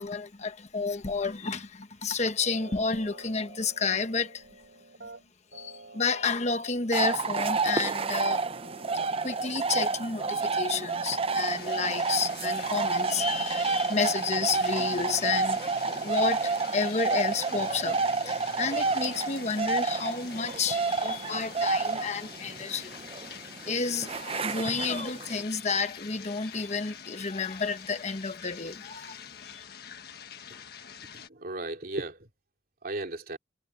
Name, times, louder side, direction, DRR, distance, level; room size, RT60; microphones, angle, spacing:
voice 1, 0.0-4.4 5.5-8.4 9.2-22.9 23.7-29.1 29.5-29.6, left 4 dB, 40° left, 1.1 m, -31 dB
sound 1, 2.4-20.6, right 2 dB, 75° right, 4.7 m, -50 dB
sound 2, 6.9-25.4, right 4 dB, 35° right, 0.6 m, -30 dB
sound 3, 11.4-31.3, left 8 dB, 60° left, 1.5 m, -46 dB
voice 2, 31.1-32.3 32.8-33.4, right 2 dB, 55° right, 3.2 m, -36 dB
head